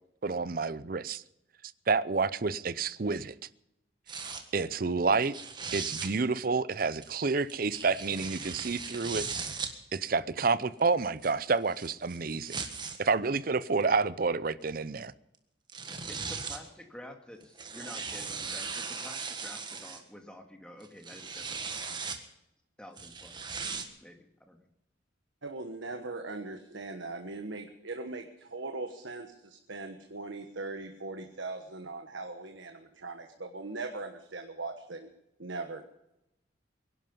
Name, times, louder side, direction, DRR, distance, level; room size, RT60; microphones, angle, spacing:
voice 1, 0.2-1.2 1.9-3.3 4.1-4.2 4.5-5.3 5.7-9.3 9.9-12.6 13.0-15.1, right 4 dB, 50° right, 0.6 m, -29 dB
sound 1, 4.1-4.4 5.2-6.1 7.0-9.7 10.6-13.0 13.8-13.9 15.3-15.4 15.7-16.7 17.4-20.0 20.8-22.2 23.0-23.8, right 5 dB, 25° right, 1.5 m, -38 dB
voice 2, 16.1-22.0 22.8-23.6 24.0-24.6, left 1 dB, 5° left, 1.9 m, -49 dB
voice 3, 25.4-35.1 35.4-35.8, right 3 dB, 80° right, 1.3 m, -40 dB
23.0 x 11.5 x 5.4 m
head